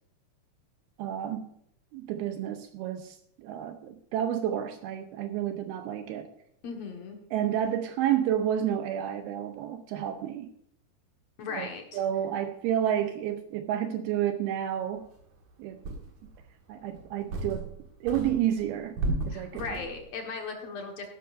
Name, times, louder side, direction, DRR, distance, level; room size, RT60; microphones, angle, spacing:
voice 1, 1.0-1.5 1.9-6.3 7.3-10.5 11.5-11.7 11.9-15.1 15.6-16.0 16.7-17.7 18.0-19.0 19.3-19.7, right 10 dB, 80° right, 8 dB, 2.4 m, -30 dB
voice 2, 6.6-7.2 11.4-12.0 19.3-21.1, left 4 dB, 60° left, 2 dB, 1.9 m, -37 dB
sound 1, 15.2-15.3 15.8-16.4 16.9-17.8 18.1-20.1, right 2 dB, 55° right, 2.6 m, -34 dB
14.5 x 11.5 x 2.6 m, 0.73 s
omnidirectional pair, 5.0 m